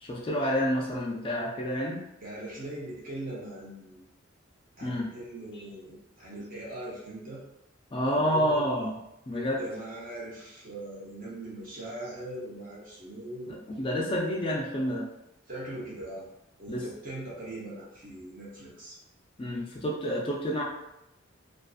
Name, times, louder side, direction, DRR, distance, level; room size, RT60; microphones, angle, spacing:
voice 1, 0.0-2.0 4.8-5.1 7.9-8.9 9.3-9.6 13.5-15.0 16.7-16.8 19.4-20.6, equal, 25° left, -2 dB, 0.4 m, -29 dB
voice 2, 2.2-4.0 4.8-7.4 8.0-8.9 9.3-13.6 15.5-16.3 16.6-19.0, right 1 dB, 45° right, -4 dB, 0.7 m, -40 dB
2.5 x 2.4 x 2.3 m, 0.87 s
head